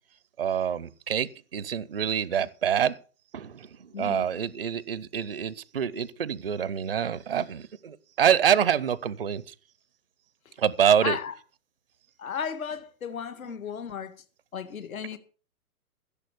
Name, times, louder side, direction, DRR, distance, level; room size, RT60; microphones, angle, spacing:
voice 1, 0.4-2.9 3.3-9.5 10.6-11.2, right 8 dB, 40° right, 0.5 m, -26 dB
voice 2, 3.9-4.3 10.5-10.6 10.9-11.3 12.2-14.2 14.5-15.2, left 7 dB, 65° left, 1.9 m, -34 dB
15.5 x 7.0 x 6.6 m
hypercardioid pair, 175°, 45 cm